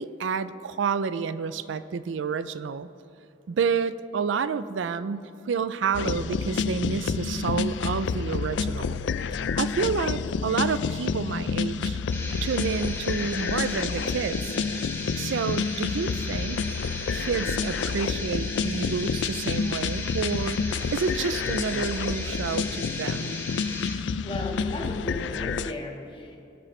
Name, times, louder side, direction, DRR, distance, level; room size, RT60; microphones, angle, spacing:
voice 1, 0.0-2.9 3.5-9.0 9.6-12.0 12.4-14.6 15.2-16.6 17.0-20.6 20.9-23.4, right 5 dB, 90° right, 14 dB, 0.4 m, -29 dB
sound 1, 5.9-25.7, left 5 dB, 70° left, 0.4 m, -29 dB
sound 2, 12.1-24.0, left 2 dB, 15° left, 1.5 m, -37 dB
voice 2, 24.2-26.4, left 2 dB, 30° left, 0 dB, 1.5 m, -35 dB
22.5 x 7.6 x 3.3 m, 2.7 s
head